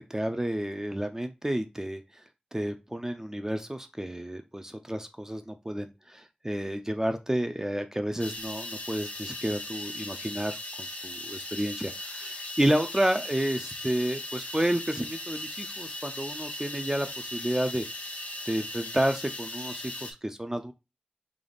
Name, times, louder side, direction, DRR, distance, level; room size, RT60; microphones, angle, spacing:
voice 1, 0.0-2.0 2.5-17.9 18.5-20.7, right 1 dB, 20° right, 7 dB, 0.4 m, -30 dB
sound 1, 8.2-20.1, left 1 dB, 60° left, 0.7 m, -38 dB
3.3 x 2.3 x 3.9 m, 0.26 s
wide cardioid pair, 50°, 3 cm